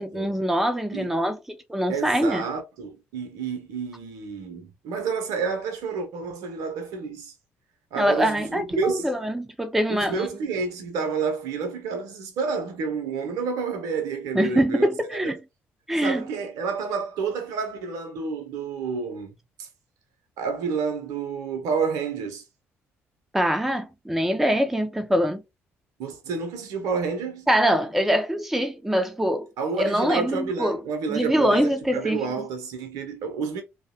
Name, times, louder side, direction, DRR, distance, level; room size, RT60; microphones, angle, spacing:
voice 1, 0.0-1.4 1.7-2.5 8.0-10.3 14.3-15.4 15.9-16.2 23.3-25.4 27.5-29.5 29.8-30.8 31.1-32.2, equal, 5° right, 0.4 m, -23 dB
voice 2, 1.9-7.3 7.9-9.1 9.9-14.9 15.2-15.3 16.0-19.3 19.6-19.7 20.4-22.4 26.0-27.5 29.6-33.6, right 5 dB, 60° right, 0.6 m, -29 dB
2.6 x 2.1 x 2.6 m
figure-of-eight pair, 45°, 7 cm